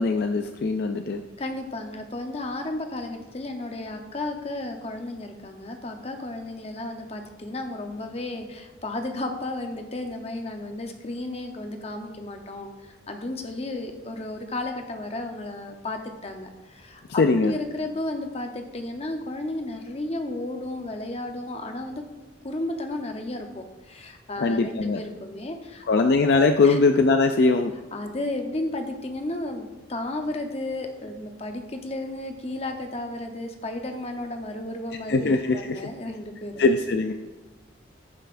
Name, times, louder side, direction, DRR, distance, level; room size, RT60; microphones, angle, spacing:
voice 1, 0.0-1.2 17.2-17.5 24.4-25.0 25.9-27.7 35.1-35.9 36.6-37.1, left 3 dB, 55° left, 6 dB, 0.4 m, -21 dB
voice 2, 1.4-22.0 22.4-25.8 26.6-26.8 27.9-36.6, left 2 dB, 35° left, 4 dB, 0.8 m, -33 dB
15.5 x 5.6 x 2.5 m, 1.2 s
head